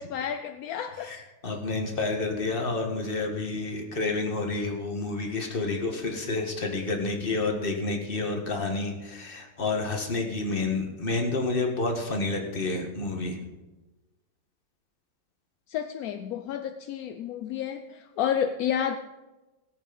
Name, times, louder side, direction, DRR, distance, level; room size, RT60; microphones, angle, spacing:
voice 1, 0.0-1.1 15.7-19.0, left 9 dB, 70° left, 8 dB, 0.9 m, -30 dB
voice 2, 1.0-13.4, left 3 dB, 30° left, 2 dB, 1.8 m, -29 dB
17.5 x 8.3 x 5.3 m, 1.1 s
omnidirectional pair, 2.0 m